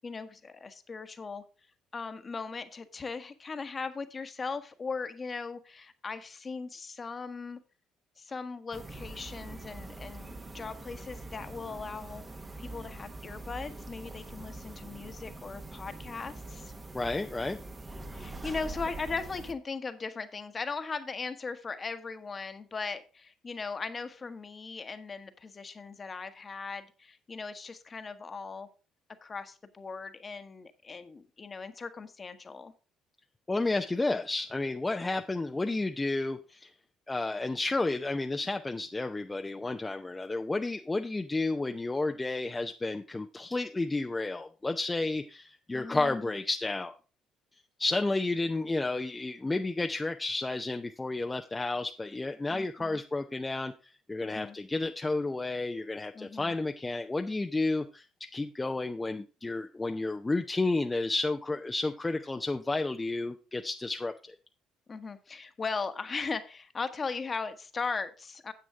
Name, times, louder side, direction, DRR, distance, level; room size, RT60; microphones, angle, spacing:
voice 1, 0.0-1.4 1.9-7.6 8.2-12.2 12.6-16.7 18.1-28.7 29.2-32.7 45.7-46.3 52.5-53.0 54.2-54.6 56.1-56.5 64.9-68.5, left 4 dB, 35° left, 9 dB, 1.2 m, -38 dB
sound 1, 8.7-19.5, right 2 dB, 25° right, 1.2 m, -44 dB
voice 2, 16.9-17.6 33.5-36.7 37.1-46.9 47.8-58.1 58.3-64.4, left 2 dB, 20° left, 5 dB, 0.7 m, -31 dB
9.6 x 7.6 x 3.6 m, 0.33 s
hypercardioid pair, 60°, 0 cm